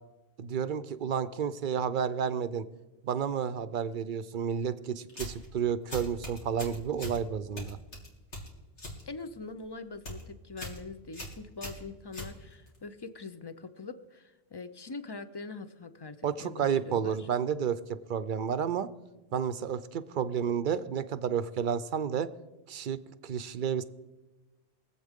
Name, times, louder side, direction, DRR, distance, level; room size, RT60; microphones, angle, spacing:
voice 1, 0.4-2.7 3.0-7.8 16.2-17.8 18.1-18.9 19.3-22.3 22.7-23.8, right 7 dB, 55° right, 13 dB, 0.6 m, -31 dB
sound 1, 5.1-5.5 5.9-7.2 7.6-9.0 9.3-9.6 9.9-10.2 10.6-10.8 11.1-12.8, equal, 90° left, 3.0 m, -41 dB
voice 2, 9.1-17.3, left 4 dB, 30° left, 10 dB, 0.5 m, -43 dB
23.0 x 8.0 x 3.7 m, 1.1 s
omnidirectional pair, 1.1 m